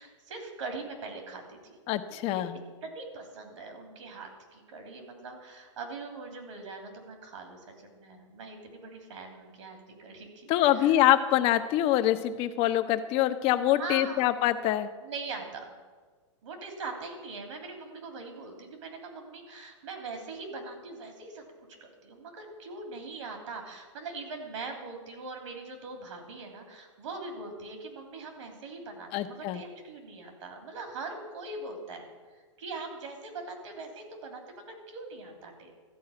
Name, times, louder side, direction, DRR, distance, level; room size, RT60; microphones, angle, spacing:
voice 1, 0.0-1.8 2.1-2.4 2.8-11.0 13.7-14.3 15.0-15.7 16.4-21.4 21.8-32.1 32.6-35.7, right 3 dB, 75° right, 3 dB, 3.2 m, -42 dB
voice 2, 1.9-2.6 10.5-14.9 29.1-29.6, left 13 dB, 35° left, 10 dB, 0.8 m, -25 dB
13.5 x 4.7 x 8.7 m, 1.4 s
hypercardioid pair, 125°, 16 cm